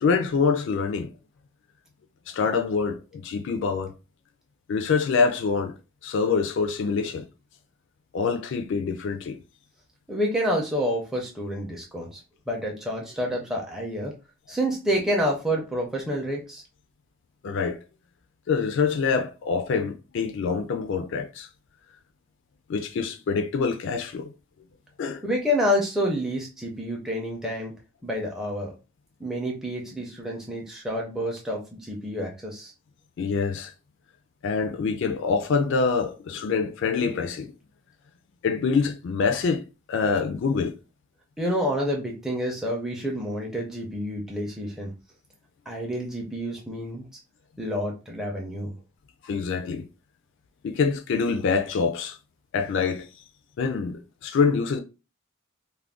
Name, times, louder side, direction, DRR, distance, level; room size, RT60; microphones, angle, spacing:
voice 1, 0.0-1.1 2.3-3.9 4.7-5.7 6.0-7.2 8.1-9.4 17.4-17.8 18.5-21.5 22.7-24.3 25.0-25.2 33.2-33.7 34.4-37.5 38.4-40.7 49.2-49.8 50.6-52.2 52.5-53.1 53.6-54.8, left 5 dB, 60° left, 0.3 m, -25 dB
voice 2, 10.1-12.2 12.5-14.1 14.5-16.6 25.2-27.7 28.0-28.7 29.2-32.7 41.4-44.9 45.7-47.0 47.6-48.7, equal, ahead, 0.5 m, -28 dB
2.4 x 2.2 x 3.4 m
head